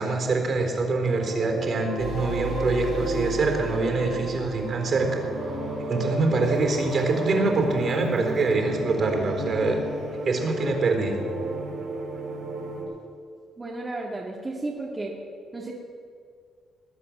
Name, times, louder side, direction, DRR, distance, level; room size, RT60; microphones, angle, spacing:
voice 1, 0.0-5.2 5.9-9.8 10.2-11.2, right 3 dB, 50° right, 3 dB, 4.0 m, -24 dB
sound 1, 1.0-12.8, right 2 dB, 65° right, 5.3 m, -32 dB
sound 2, 2.0-5.7, left 4 dB, 70° left, 3.2 m, -37 dB
voice 2, 13.6-15.2 15.5-15.7, right 2 dB, 25° right, -2 dB, 2.0 m, -33 dB
20.5 x 8.3 x 7.3 m, 2.2 s
cardioid pair, 90°, 0 cm